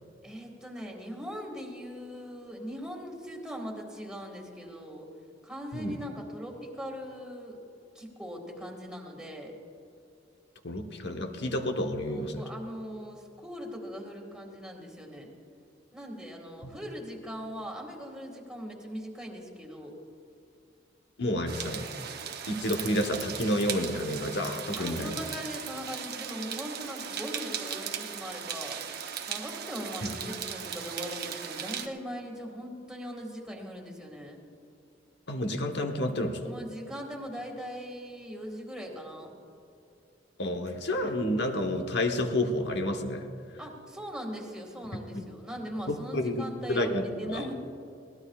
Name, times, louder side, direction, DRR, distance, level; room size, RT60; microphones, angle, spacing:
voice 1, 0.2-5.1 5.4-7.6 8.0-9.6 12.1-15.3 15.9-19.9 24.8-28.8 29.3-34.4 36.4-39.3 43.6-47.5, equal, 5° right, 0 dB, 2.0 m, -40 dB
voice 2, 10.6-12.4 16.6-16.7 21.2-21.9 22.5-25.2 30.0-30.1 35.3-36.4 40.4-43.3 45.1-45.2 45.9-46.4 46.7-47.5, left 1 dB, 65° left, 5 dB, 1.2 m, -30 dB
sound 1, 21.5-31.9, right 8 dB, 60° right, 0.8 m, -38 dB
21.5 x 17.5 x 2.4 m, 2.5 s
head